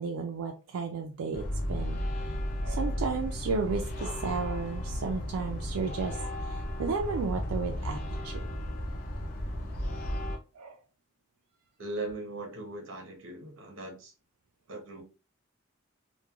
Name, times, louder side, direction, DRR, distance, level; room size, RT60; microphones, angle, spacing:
voice 1, 0.0-2.4 2.6-8.4 10.6-10.8, right 4 dB, 90° right, 0.4 m, -33 dB
sound 1, 1.3-10.4, equal, 45° left, 0.5 m, -34 dB
voice 2, 11.8-14.1 14.7-15.0, right 2 dB, 65° right, 0.8 m, -39 dB
3.0 x 2.2 x 2.2 m
head